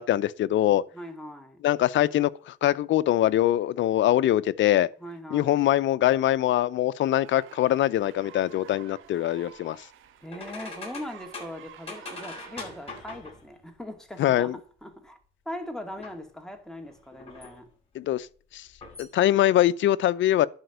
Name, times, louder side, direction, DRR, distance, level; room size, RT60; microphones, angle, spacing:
voice 1, 0.0-0.8 1.6-4.9 5.3-9.8 14.2-14.6 17.9-18.3 18.5-18.7 19.0-20.5, left 13 dB, 70° left, 0.6 m, -23 dB
voice 2, 0.9-1.6 5.0-5.6 10.2-15.2 15.5-17.7, left 1 dB, 5° left, 2.5 m, -40 dB
sound 1, 7.0-13.0, right 10 dB, 85° right, 1.6 m, -50 dB
sound 2, 10.3-13.6 16.0-16.2 16.8-17.7 18.7-19.1, left 3 dB, 30° left, 6.9 m, -42 dB
11.5 x 5.2 x 7.9 m
cardioid pair, 90°, 20 cm